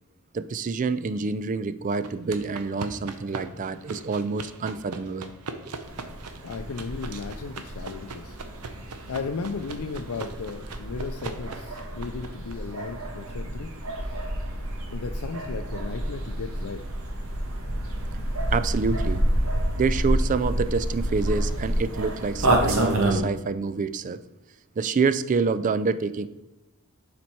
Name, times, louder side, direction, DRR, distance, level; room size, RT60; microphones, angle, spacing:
voice 1, 0.3-5.3 18.5-19.2 19.8-24.2 24.8-26.3, right 4 dB, 35° right, 13 dB, 0.3 m, -27 dB
sound 1, 2.0-12.5, right 3 dB, 90° right, 0.8 m, -40 dB
sound 2, 5.8-23.2, right 1 dB, 70° right, 1.2 m, -29 dB
voice 2, 6.4-8.4 9.1-13.7 14.1-14.2 14.9-16.8, left 4 dB, 70° left, 5 dB, 0.5 m, -35 dB
7.2 x 4.3 x 4.5 m, 1.0 s
head